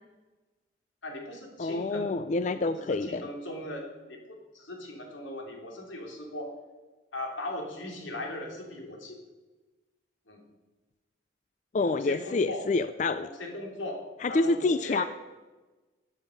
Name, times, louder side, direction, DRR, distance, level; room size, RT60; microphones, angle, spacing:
voice 1, 1.0-2.1 2.5-6.5 7.1-9.2 10.3-10.4 11.8-12.6 13.2-15.1, left 1 dB, 85° left, 1 dB, 3.1 m, -39 dB
voice 2, 1.6-3.3 11.7-13.3 14.2-15.0, left 3 dB, 40° left, 13 dB, 0.3 m, -27 dB
15.0 x 9.8 x 5.2 m, 1.2 s
head